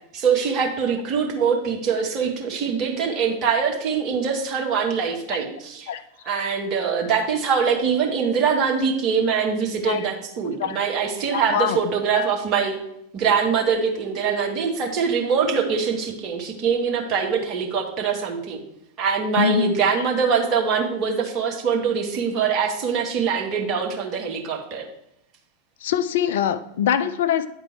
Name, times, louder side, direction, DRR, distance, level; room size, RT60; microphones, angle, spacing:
voice 1, 0.1-5.9 6.2-12.8 13.1-18.6 19.0-24.8, right 6 dB, 35° right, 1 dB, 1.3 m, -23 dB
voice 2, 11.3-11.8 19.4-19.8 25.8-27.5, left 8 dB, 55° left, 12 dB, 0.4 m, -23 dB
9.5 x 3.7 x 4.6 m, 0.79 s
figure-of-eight pair, 90°, 0 cm